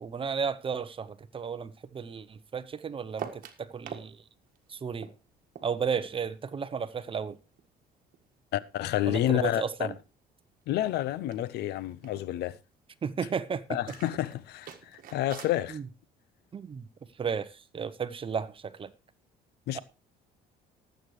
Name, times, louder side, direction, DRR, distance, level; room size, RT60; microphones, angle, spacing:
voice 1, 0.0-4.2 4.7-5.1 5.6-7.4 9.1-9.9 13.0-13.8 15.7-15.9 16.5-16.9 17.2-18.9 19.7-19.8, right 6 dB, 30° right, 0.9 m, -33 dB
sound 1, 3.1-4.1 4.4-7.2 7.5-9.3 9.5-10.1 10.4-10.5 10.7-10.9 11.3-12.3 13.8-15.6, right 9 dB, 55° right, 1.7 m, -45 dB
voice 2, 8.5-9.9 10.7-12.6 13.7-15.8 19.7-19.8, left 13 dB, 75° left, 0.6 m, -29 dB
19.0 x 8.0 x 3.2 m
cardioid pair, 110°, 17 cm